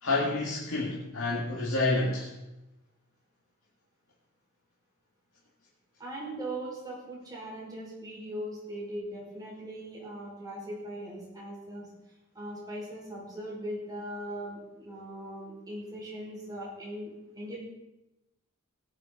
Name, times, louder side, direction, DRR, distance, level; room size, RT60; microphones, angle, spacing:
voice 1, 0.0-2.3, left 2 dB, 75° left, -4 dB, 2.2 m, -28 dB
voice 2, 6.0-11.9 12.3-17.1 17.3-17.6, right 1 dB, 20° right, -5 dB, 5.6 m, -39 dB
17.5 x 11.0 x 4.1 m, 0.96 s
head